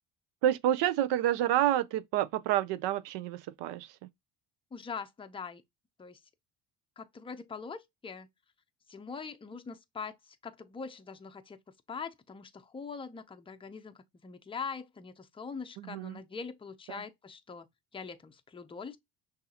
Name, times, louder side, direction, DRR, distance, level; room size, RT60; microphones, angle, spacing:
voice 1, 0.4-3.9 15.8-16.2 16.9-17.0, right 12 dB, 70° right, 0.6 m, -29 dB
voice 2, 4.7-5.6 6.0-6.2 7.0-8.3 8.9-11.6 11.9-13.9 14.2-17.7 17.9-19.0, left 5 dB, 10° left, 0.5 m, -42 dB
6.1 x 2.7 x 2.8 m
supercardioid pair, 90°, 44 cm